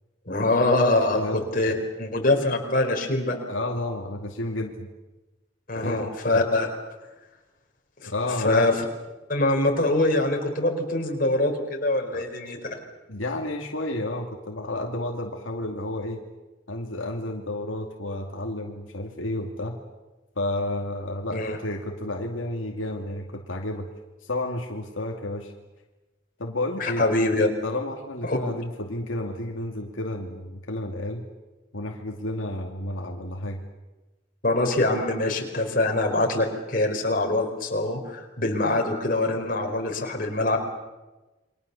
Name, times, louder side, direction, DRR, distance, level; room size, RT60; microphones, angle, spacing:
voice 1, 0.3-1.7 2.0-3.4 5.7-6.7 8.0-8.1 8.4-8.7 9.3-12.6 21.3-21.6 26.8-27.5 28.3-28.4 34.4-40.6, left 2 dB, 45° left, 2 dB, 4.5 m, -24 dB
voice 2, 1.1-1.8 3.5-4.9 5.8-6.1 6.3-6.4 8.0-8.7 12.1-12.3 13.1-16.2 16.7-19.8 20.4-23.9 24.2-25.5 26.4-27.0 27.6-31.3 31.7-33.6, left 1 dB, 80° left, 2 dB, 2.4 m, -31 dB
28.5 x 24.0 x 7.0 m, 1.1 s
head